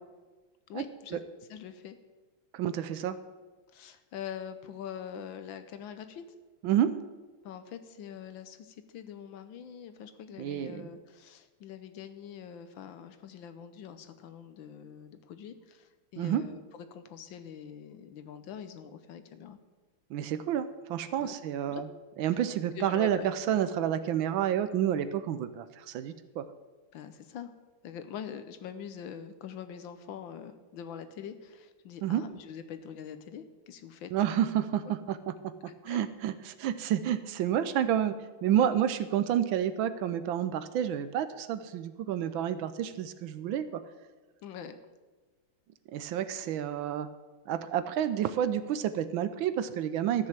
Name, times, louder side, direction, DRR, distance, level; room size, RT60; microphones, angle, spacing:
voice 1, 0.7-1.2 1.5-2.0 3.7-6.2 7.4-19.6 21.2-21.4 21.6-21.9 22.7-23.3 24.7-24.8 26.9-27.5 27.8-34.1 34.8-34.9 35.9-36.0 38.5-38.8 44.4-44.8, left 8 dB, 70° left, 10 dB, 1.4 m, -44 dB
voice 2, 2.5-3.2 6.6-6.9 10.4-10.9 16.2-16.4 20.1-21.9 22.2-26.5 32.0-32.2 34.1-35.2 35.4-35.5 35.8-38.1 38.4-43.8 45.9-47.1 47.5-50.3, right 10 dB, 75° right, 12 dB, 1.3 m, -29 dB
13.5 x 6.4 x 7.3 m, 1.3 s
omnidirectional pair, 2.3 m